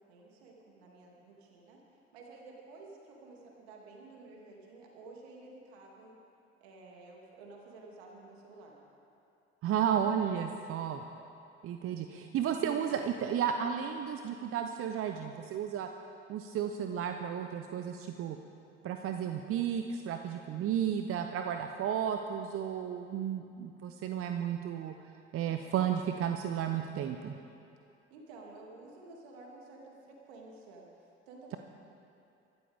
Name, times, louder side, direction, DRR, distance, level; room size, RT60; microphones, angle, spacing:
voice 1, 0.1-1.8 2.1-6.1 6.6-8.8 11.8-12.0 28.1-30.9 31.3-31.6, right 3 dB, 70° right, -1 dB, 2.8 m, -52 dB
voice 2, 9.6-11.0 11.6-15.9 16.3-18.4 18.8-24.9 25.3-27.4, right 9 dB, 40° right, 6 dB, 0.8 m, -33 dB
24.0 x 13.5 x 3.6 m, 2.6 s
figure-of-eight pair, 60°, 34 cm